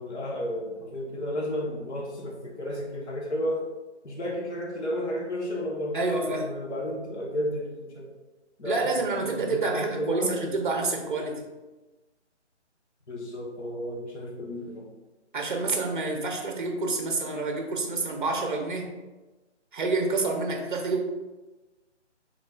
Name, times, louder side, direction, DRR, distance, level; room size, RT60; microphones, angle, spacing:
voice 1, 0.0-3.6 4.0-8.1 8.6-10.3 13.1-14.9, equal, 70° left, -2 dB, 1.1 m, -32 dB
voice 2, 5.9-6.5 8.6-11.4 15.3-18.9 19.7-21.1, right 3 dB, 45° right, 3 dB, 0.7 m, -28 dB
4.9 x 3.7 x 2.3 m, 1.2 s
figure-of-eight pair, 160°, 36 cm